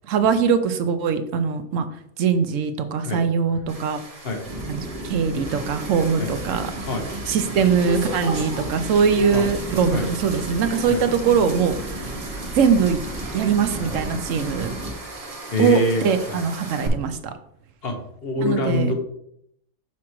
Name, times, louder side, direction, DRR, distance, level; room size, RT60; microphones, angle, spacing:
voice 1, 0.1-1.9 2.2-4.0 4.7-6.7 7.3-12.0 12.5-13.0 13.3-14.8 15.6-17.3 18.4-18.9, right 6 dB, 75° right, 9 dB, 1.0 m, -21 dB
sound 1, 3.7-16.9, right 2 dB, 30° right, 0.8 m, -36 dB
sound 2, 4.4-14.9, right 1 dB, 50° right, 1.8 m, -34 dB
voice 2, 15.5-16.4 17.8-18.9, left 2 dB, 50° left, 3 dB, 1.1 m, -25 dB
6.1 x 5.8 x 3.0 m, 0.72 s
omnidirectional pair, 1.4 m